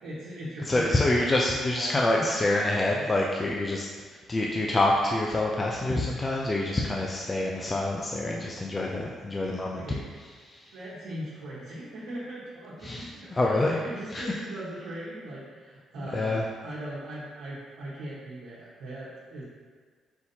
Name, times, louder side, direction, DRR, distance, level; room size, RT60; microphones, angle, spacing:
voice 1, 0.0-2.4 8.9-9.1 9.7-10.1 10.7-19.4, right 1 dB, 90° right, -10 dB, 1.2 m, -39 dB
voice 2, 0.7-9.8 10.4-10.7 12.8-13.7 14.1-14.3 16.0-16.4, left 2 dB, 25° left, -2 dB, 0.4 m, -27 dB
4.4 x 4.0 x 2.7 m, 1.5 s
cardioid pair, 90°, 0 cm